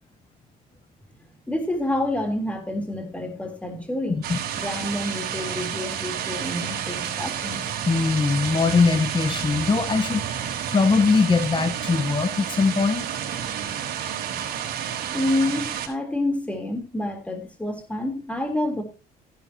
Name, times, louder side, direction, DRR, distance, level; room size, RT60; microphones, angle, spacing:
voice 1, 1.5-4.2 4.6-7.6 15.1-18.8, left 1 dB, 10° left, 3.5 m, -28 dB
sound 1, 4.2-15.9, right 9 dB, 65° right, 3.7 m, -30 dB
voice 2, 7.9-10.2 10.7-13.1, left 4 dB, 25° left, 1.2 m, -21 dB
14.0 x 11.0 x 2.9 m
cardioid pair, 110°, 17 cm